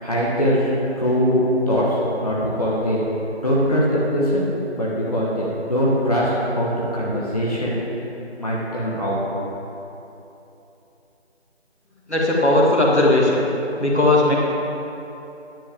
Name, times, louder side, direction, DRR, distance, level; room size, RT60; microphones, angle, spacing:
voice 1, 0.0-0.7 1.0-1.4 1.7-3.0 3.4-4.4 4.7-7.8 8.4-9.2, equal, 35° left, -7 dB, 1.2 m, -21 dB
voice 2, 12.1-13.5 13.8-14.4, left 2 dB, 75° left, -3 dB, 2.1 m, -17 dB
10.5 x 4.6 x 7.3 m, 3.0 s
figure-of-eight pair, 170°, 34 cm